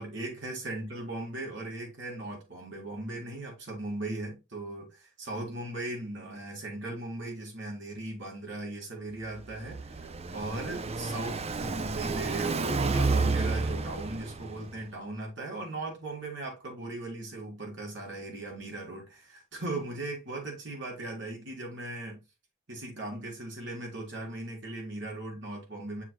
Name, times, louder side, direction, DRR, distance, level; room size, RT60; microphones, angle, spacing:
voice 1, 0.0-22.2 22.7-26.0, right 2 dB, 65° right, 3.9 m, -38 dB
Car passing by, 9.2-14.8, right 3 dB, 30° right, 0.6 m, -30 dB
7.4 x 6.2 x 2.3 m
head